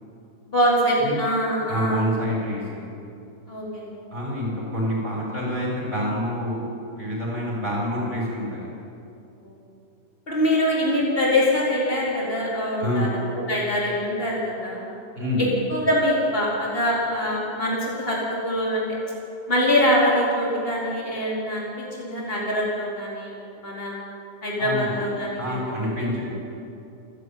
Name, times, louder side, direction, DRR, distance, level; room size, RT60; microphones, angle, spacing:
voice 1, 0.5-2.1 3.5-3.9 9.4-9.5 10.3-13.1 13.5-14.9 15.7-18.2 18.4-18.9 19.5-24.0 24.4-25.6, equal, 30° left, -5 dB, 4.6 m, -24 dB
voice 2, 1.7-2.8 4.1-6.7 6.9-8.7 12.8-13.1 15.2-15.6 24.6-25.0 25.4-26.3, left 1 dB, 25° right, -4 dB, 7.1 m, -27 dB
26.5 x 11.0 x 9.4 m, 2.7 s
omnidirectional pair, 2.0 m